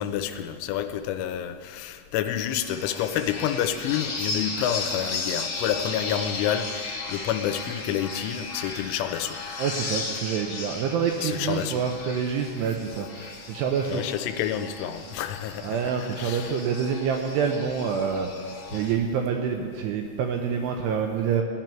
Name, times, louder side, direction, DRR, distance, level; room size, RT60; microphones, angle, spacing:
voice 1, 0.0-9.4 11.2-11.8 13.9-15.8 16.2-16.5, left 10 dB, 90° left, 8 dB, 3.1 m, -29 dB
sound 1, 2.5-18.9, left 4 dB, 45° left, 1.6 m, -35 dB
voice 2, 9.6-14.1 15.6-21.4, right 7 dB, 85° right, 3 dB, 2.4 m, -27 dB
18.0 x 10.5 x 4.5 m, 2.1 s
omnidirectional pair, 5.5 m